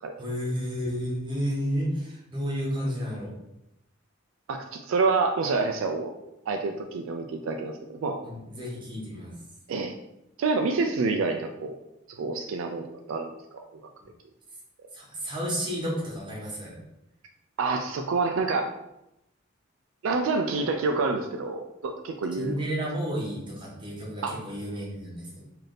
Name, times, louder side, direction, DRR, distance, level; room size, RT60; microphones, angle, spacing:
voice 1, 0.2-3.3 8.2-9.3 14.9-16.8 22.4-25.3, equal, 25° right, -5 dB, 1.1 m, -31 dB
voice 2, 4.5-6.1 6.5-8.2 9.7-9.9 10.4-11.8 12.2-13.3 13.7-13.8 17.6-18.7 20.0-22.6 24.2-24.4, right 4 dB, 75° right, 5 dB, 0.3 m, -27 dB
3.3 x 2.7 x 3.9 m, 0.87 s
head